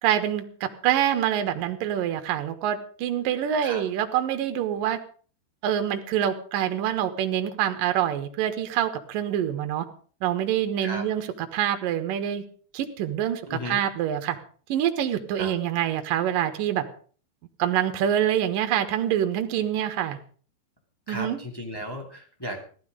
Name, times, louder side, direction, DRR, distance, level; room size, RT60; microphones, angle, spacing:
voice 1, 0.0-5.0 5.6-9.9 10.2-12.4 12.7-14.4 14.7-16.8 17.6-20.2 21.1-21.4, right 10 dB, 65° right, 7 dB, 2.7 m, -26 dB
voice 2, 13.5-13.8 15.4-15.5 21.1-22.6, equal, 10° left, 0 dB, 1.7 m, -35 dB
15.5 x 13.0 x 5.1 m, 0.43 s
omnidirectional pair, 4.7 m